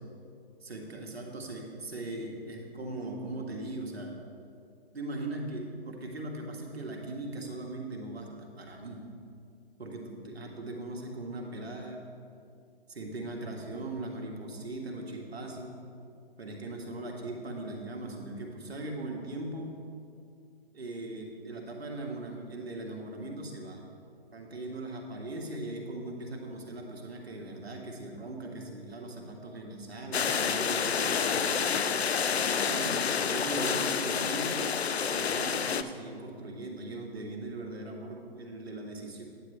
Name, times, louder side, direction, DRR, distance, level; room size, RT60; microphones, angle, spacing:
voice 1, 0.6-4.1 4.9-9.1 9.8-12.0 12.9-15.7 16.4-19.8 20.7-23.8 24.3-31.8 32.5-34.6 35.0-39.2, right 2 dB, 75° right, 1 dB, 1.5 m, -39 dB
sound 1, 30.1-35.8, left 6 dB, 85° left, 0.5 m, -29 dB
9.1 x 8.6 x 3.3 m, 2.4 s
figure-of-eight pair, 140°, 31 cm